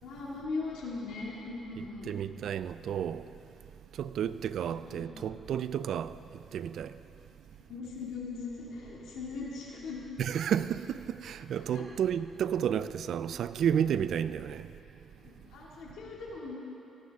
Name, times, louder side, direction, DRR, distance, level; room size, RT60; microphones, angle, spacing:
voice 1, 0.0-2.1 4.7-5.3 7.7-10.0 11.7-11.8 15.2-16.5, left 3 dB, 80° left, 2.3 m, -39 dB
voice 2, 2.1-3.3 4.0-6.1 6.5-6.9 10.2-14.7, right 9 dB, 70° right, 0.4 m, -31 dB
18.5 x 9.5 x 3.6 m
cardioid pair, 90°, 0 cm